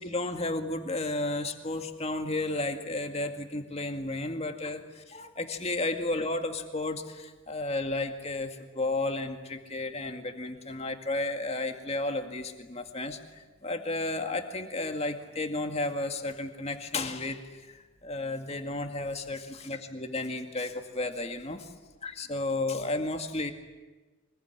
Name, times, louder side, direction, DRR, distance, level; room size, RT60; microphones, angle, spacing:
voice 1, 0.0-21.7 22.0-23.5, left 2 dB, 30° left, 5 dB, 2.1 m, -33 dB
24.5 x 22.0 x 9.9 m, 1.3 s
head